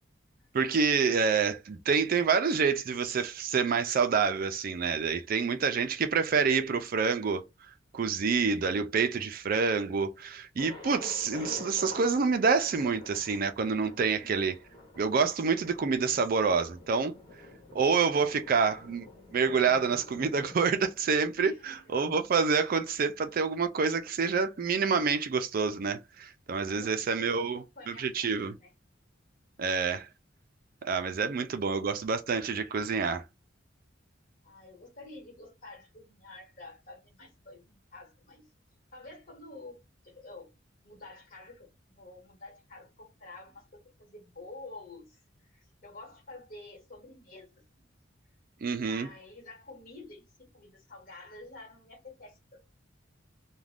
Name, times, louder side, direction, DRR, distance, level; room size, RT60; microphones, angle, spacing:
voice 1, 0.5-7.4 7.9-14.6 15.0-17.1 17.7-19.1 19.3-28.5 29.6-30.1 30.8-33.2 48.6-49.1, right 5 dB, 50° right, 0.4 m, -27 dB
Thunder, 10.6-22.4, left 2 dB, 20° left, 1.2 m, -48 dB
voice 2, 21.5-21.9 26.7-28.7 31.2-31.7 34.4-38.5 38.9-39.8 40.0-40.5 40.8-45.2 45.5-47.5 47.8-47.9 48.7-52.6, left 2 dB, 45° left, 1.4 m, -49 dB
2.4 x 2.2 x 3.3 m
head